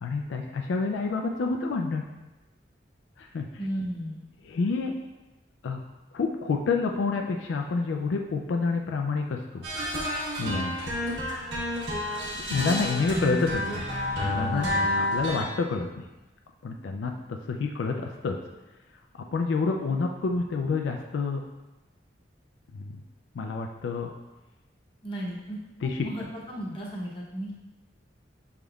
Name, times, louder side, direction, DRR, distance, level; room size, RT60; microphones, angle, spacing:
voice 1, 0.0-2.1 3.2-3.5 4.4-4.9 5.6-5.8 6.1-9.7 10.4-10.9 12.4-13.9 14.2-14.7 15.0-16.1 16.6-18.4 19.3-21.4 22.7-22.9 23.3-24.1 25.8-26.1, left 4 dB, 75° left, 3 dB, 0.3 m, -28 dB
voice 2, 3.6-4.2 14.5-14.8 25.0-25.6 26.0-27.5, right 1 dB, 25° left, -4 dB, 0.8 m, -34 dB
sound 1, 9.6-15.4, left 1 dB, 65° right, 1.3 m, -29 dB
6.2 x 3.5 x 2.3 m, 1.1 s
head